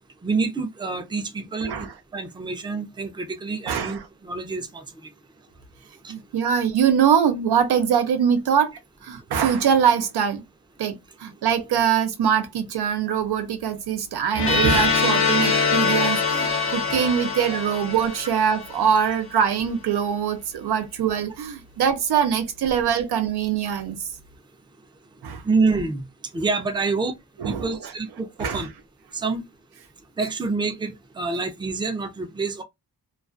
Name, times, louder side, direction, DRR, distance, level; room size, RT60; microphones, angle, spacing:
voice 1, 0.2-5.1 6.0-6.1 25.4-26.1 26.3-27.1 27.4-28.7 29.1-29.4 30.2-32.6, right 4 dB, 10° right, 0.4 m, -27 dB
voice 2, 3.7-4.0 6.1-8.7 9.0-10.4 10.8-24.0 25.2-25.4 27.4-27.9 28.4-28.7, right 8 dB, 85° right, 0.6 m, -23 dB
sound 1, 14.3-19.2, left 5 dB, 35° left, 0.6 m, -23 dB
2.4 x 2.3 x 2.4 m
wide cardioid pair, 100°, 38 cm